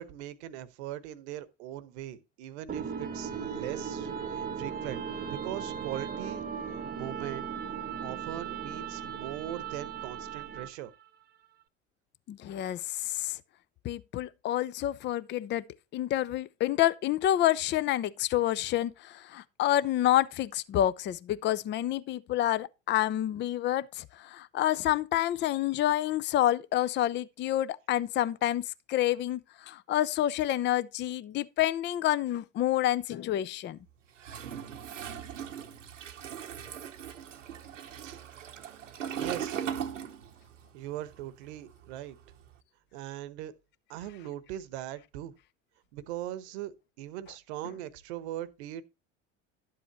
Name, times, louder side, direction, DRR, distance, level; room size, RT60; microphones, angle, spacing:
voice 1, 0.0-6.4 6.9-7.5 8.0-10.9 38.0-38.2 39.1-39.7 40.7-42.2 42.9-43.5 43.9-45.3 45.9-48.8, right 12 dB, 65° right, 1.0 m, -40 dB
sound 1, 2.7-10.9, right 7 dB, 25° right, 1.0 m, -37 dB
voice 2, 12.3-13.4 13.8-15.6 15.9-28.6 28.9-29.4 29.7-33.8, left 13 dB, 30° left, 0.5 m, -28 dB
Toilet flush, 34.2-40.6 40.9-42.5, right 8 dB, 85° right, 0.9 m, -39 dB
11.5 x 7.7 x 3.0 m
figure-of-eight pair, 70°, 37 cm